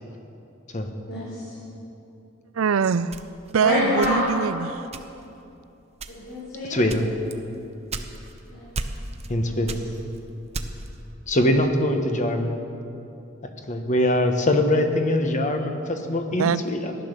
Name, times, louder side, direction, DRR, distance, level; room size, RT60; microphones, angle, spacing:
voice 1, 1.1-1.5 3.6-4.2 6.1-6.8 8.5-8.7 9.5-9.6, left 1 dB, 65° left, -8 dB, 4.1 m, -27 dB
voice 2, 2.5-3.2 3.5-4.9 16.4-16.6, right 6 dB, 80° right, 16 dB, 0.4 m, -23 dB
sound 1, 3.1-4.5 4.9-5.4 5.9-6.4 6.9-8.4 8.7-9.4 9.6-11.0, right 3 dB, 30° right, 0.8 m, -34 dB
voice 3, 6.7-7.1 9.3-9.8 11.3-12.6 13.7-17.0, left 1 dB, 35° left, 5 dB, 1.2 m, -23 dB
15.0 x 11.0 x 6.7 m, 2.8 s
head